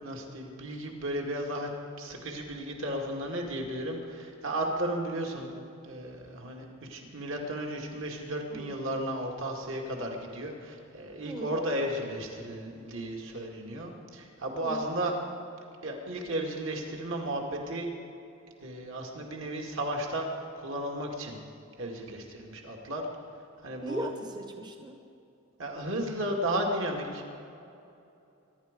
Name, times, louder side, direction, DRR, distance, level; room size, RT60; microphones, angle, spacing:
voice 1, 0.0-1.7 2.0-5.5 5.8-15.2 15.8-17.9 18.6-20.3 20.6-21.4 21.8-23.1 23.6-24.1 25.6-27.3, right 1 dB, 60° right, 1 dB, 2.2 m, -34 dB
voice 2, 11.2-11.6 14.6-14.9 23.8-25.0, right 2 dB, 20° right, 4 dB, 0.9 m, -38 dB
23.5 x 11.0 x 5.2 m, 2.8 s
head